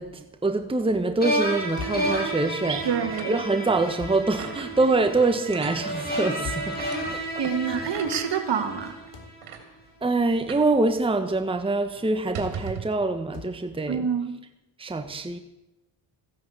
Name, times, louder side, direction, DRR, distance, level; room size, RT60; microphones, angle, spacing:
voice 1, 0.0-2.9 3.3-6.8 7.1-7.4 7.7-7.8 10.0-14.0 14.8-15.4, right 3 dB, 10° right, 1.2 m, -25 dB
sound 1, 1.2-9.4, right 1 dB, 20° left, 7.0 m, -31 dB
sound 2, 1.8-2.2 4.0-4.3 6.4-6.8 9.1-9.4 11.3-11.5 13.3-13.6, left 5 dB, 55° left, 3.4 m, -39 dB
sound 3, 1.8-2.9 3.2-3.3 3.7-3.9 4.4-4.7 5.5-5.8 6.7-7.0 7.9-8.3 9.0-9.1 9.4-9.6 10.5-10.7 11.0-11.1 11.4-11.6 12.2-13.0, right 7 dB, 75° right, 3.1 m, -38 dB
voice 2, 2.7-3.4 7.4-8.9 13.9-14.4, right 7 dB, 55° right, 2.3 m, -27 dB
15.0 x 11.0 x 8.1 m
cardioid pair, 85°, 49 cm